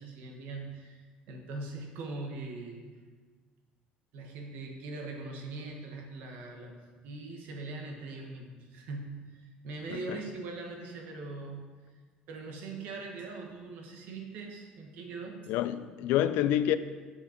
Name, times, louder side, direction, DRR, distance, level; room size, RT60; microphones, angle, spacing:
voice 1, 0.0-2.8 4.1-11.7 12.3-15.4, right 3 dB, 70° right, 1.4 m, -41 dB
voice 2, 15.5-16.8, left 12 dB, 80° left, 0.4 m, -28 dB
6.9 x 5.4 x 5.2 m
cardioid pair, 170°, 3 cm